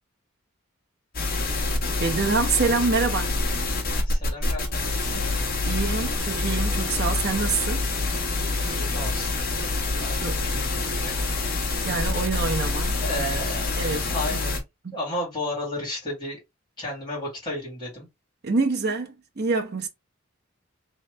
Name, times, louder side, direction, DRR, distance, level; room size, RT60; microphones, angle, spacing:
sound 1, 1.1-14.6, left 3 dB, 40° left, 1.0 m, -26 dB
voice 1, 2.0-3.3 5.6-7.8 10.2-10.4 11.8-13.2 13.8-14.4 14.8-15.0 18.4-19.9, right 4 dB, 45° right, 0.7 m, -26 dB
voice 2, 4.0-5.2 8.7-9.4 10.0-11.1 13.0-14.6 14.9-16.4 16.8-18.1, left 1 dB, 20° left, 2.0 m, -33 dB
3.2 x 2.8 x 3.2 m
head